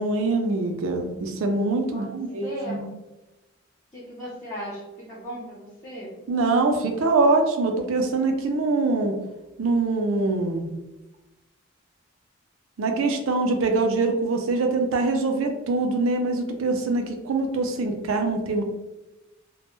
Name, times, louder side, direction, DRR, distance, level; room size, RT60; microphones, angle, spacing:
voice 1, 0.0-2.9 6.3-9.2 9.6-10.6 12.8-18.6, right 3 dB, 75° right, 4 dB, 0.4 m, -24 dB
voice 2, 2.4-2.9 3.9-6.2, equal, 15° left, -10 dB, 0.6 m, -36 dB
2.1 x 2.1 x 3.0 m, 1.0 s
head